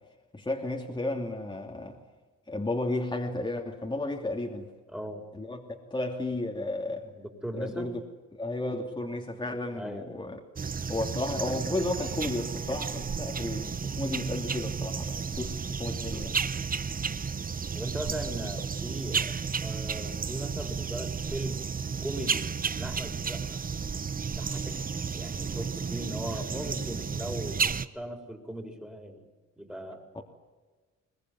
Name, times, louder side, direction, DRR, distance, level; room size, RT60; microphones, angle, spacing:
voice 1, 0.3-2.0 2.5-4.7 5.3-5.6 5.9-7.1 7.5-8.0 8.3-10.4 10.9-16.3 30.1-30.2, left 2 dB, 15° left, 2.9 m, -33 dB
voice 2, 4.9-5.3 7.1-7.9 9.7-10.0 17.1-17.3 17.7-21.7 22.0-22.5 22.8-23.6 24.3-24.7 25.1-27.7 27.9-29.3 29.6-30.0, right 1 dB, 5° right, 4.6 m, -39 dB
sound 1, 10.6-27.9, right 5 dB, 30° right, 0.9 m, -32 dB
22.0 x 19.5 x 9.5 m
cardioid pair, 90°, 30 cm